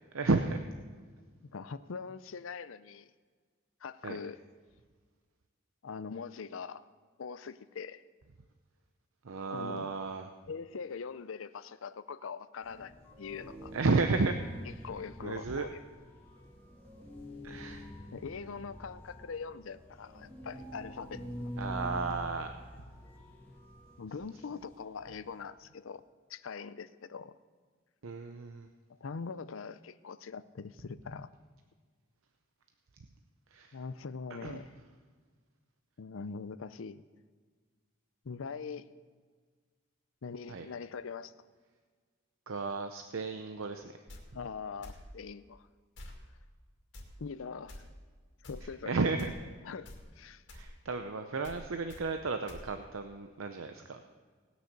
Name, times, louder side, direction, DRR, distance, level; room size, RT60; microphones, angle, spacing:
voice 1, 0.1-0.7 4.0-4.2 9.2-10.3 13.7-14.4 15.2-15.7 17.4-17.9 21.6-22.5 28.0-28.7 33.5-33.8 34.4-34.6 40.5-40.7 42.5-43.9 48.6-49.3 50.5-54.0, right 3 dB, 80° right, 7 dB, 0.7 m, -33 dB
voice 2, 1.5-3.1 3.8-4.4 5.8-6.8 7.2-8.0 9.5-9.9 10.5-13.7 14.8-15.8 18.1-21.5 24.0-26.0 26.3-27.3 29.0-31.3 33.7-34.8 36.0-37.0 38.2-38.8 40.2-41.3 44.3-45.7 47.2-47.8 48.4-48.9 49.6-50.4, left 5 dB, 80° left, 15 dB, 0.5 m, -42 dB
sound 1, 12.6-25.4, equal, 10° left, 1.9 m, -46 dB
sound 2, 44.1-44.2 44.8-45.0 46.0-46.2 46.9-47.1 47.7-47.8 48.4-48.6 49.2-49.4 49.9-50.0 50.5-50.7 51.4-51.6 51.9-52.0 52.5-52.6, left 1 dB, 60° left, 2.3 m, -47 dB
19.0 x 6.5 x 6.6 m, 1.5 s
head